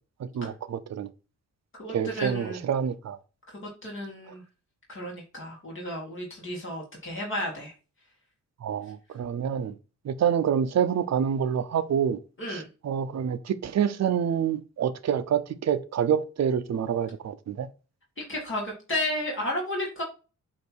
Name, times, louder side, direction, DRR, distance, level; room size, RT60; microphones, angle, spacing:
voice 1, 0.2-1.1 1.9-3.2 8.6-9.7 10.0-12.2 12.5-17.7, right 8 dB, 55° right, 0.7 m, -27 dB
voice 2, 1.7-2.6 3.5-4.4 4.9-7.7 12.4-12.7 18.3-20.0, left 1 dB, 40° left, 2.1 m, -33 dB
8.4 x 2.9 x 4.5 m
wide cardioid pair, 120°, 31 cm